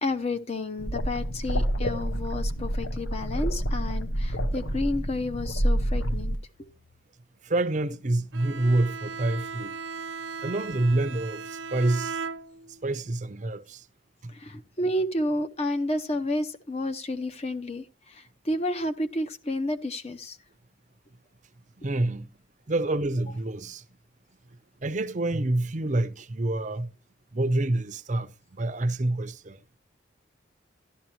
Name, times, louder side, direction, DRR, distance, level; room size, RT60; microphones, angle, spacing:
voice 1, 0.0-6.4 14.3-20.4, left 1 dB, 30° left, 0.7 m, -31 dB
sound 1, 0.8-6.4, equal, 80° left, 1.1 m, -28 dB
voice 2, 7.4-9.8 10.4-12.2 12.8-13.9 14.2-14.3 21.8-22.3 22.7-23.8 24.8-26.9 27.3-28.3 28.6-29.6, right 2 dB, 40° right, 0.6 m, -27 dB
Bowed string instrument, 8.3-12.9, right 5 dB, 70° right, 0.7 m, -37 dB
12.5 x 11.5 x 3.0 m
head